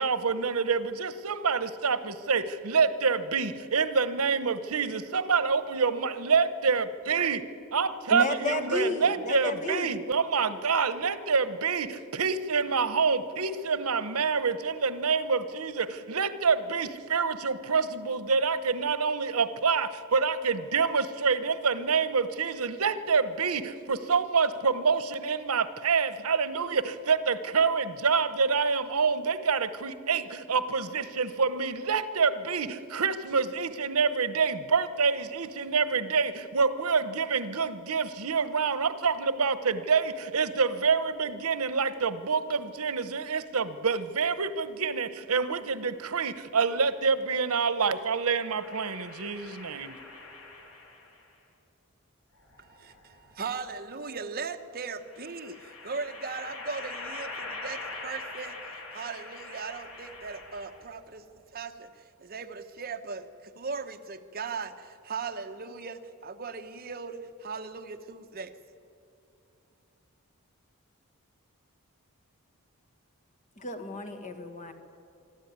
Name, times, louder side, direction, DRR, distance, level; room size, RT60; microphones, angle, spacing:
voice 1, 0.0-7.4 7.7-50.0, right 5 dB, 85° right, 13 dB, 0.9 m, -27 dB
voice 2, 8.1-9.9 73.6-74.7, left 2 dB, 35° left, 7 dB, 1.7 m, -32 dB
sound 1, 48.6-51.2 52.4-53.4 55.0-61.0, left 3 dB, 85° left, 4.5 m, -43 dB
voice 3, 52.6-61.2 61.5-68.5, right 5 dB, 45° right, 8 dB, 1.0 m, -38 dB
25.0 x 13.0 x 9.6 m, 2.7 s
head